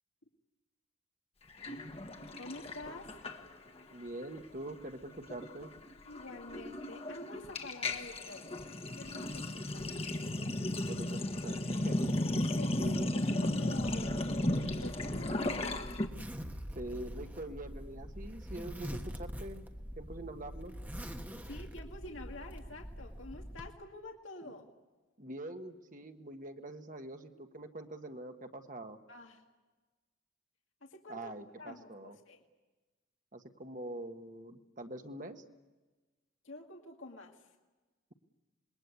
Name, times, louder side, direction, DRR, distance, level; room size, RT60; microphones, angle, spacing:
Sink (filling or washing), 1.6-3.8 4.1-4.4 4.6-16.1, left 1 dB, 30° left, 1.4 m, -35 dB
voice 1, 2.4-3.2 6.1-8.6 8.9-9.9 12.3-12.8 13.1-16.0 21.4-24.7 29.1-29.4 30.8-31.3 31.6-32.4 36.4-37.5, left 2 dB, 75° left, 2 dB, 2.2 m, -48 dB
voice 2, 3.9-5.7 10.9-12.1 12.8-13.1 16.7-19.6 20.0-20.7 24.4-24.5 25.2-29.0 31.1-32.2 33.3-35.4, right 1 dB, 40° right, 5 dB, 1.5 m, -44 dB
Zipper (clothing), 13.7-23.7, equal, 10° right, 1.2 m, -44 dB
27.0 x 21.5 x 8.4 m, 1.2 s
head